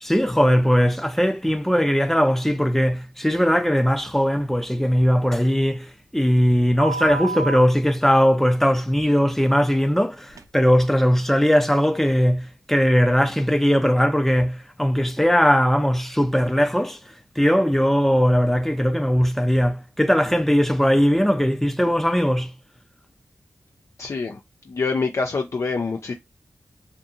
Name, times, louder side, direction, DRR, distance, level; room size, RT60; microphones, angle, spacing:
voice 1, 0.0-17.0 17.4-22.5, equal, 5° left, 0.5 m, -19 dB
sound 1, 6.8-7.6 10.4-10.5, right 4 dB, 70° right, 0.4 m, -28 dB
voice 2, 24.0-24.4 24.7-26.1, left 4 dB, 55° left, 0.4 m, -25 dB
2.6 x 2.6 x 2.4 m
cardioid pair, 50°, 6 cm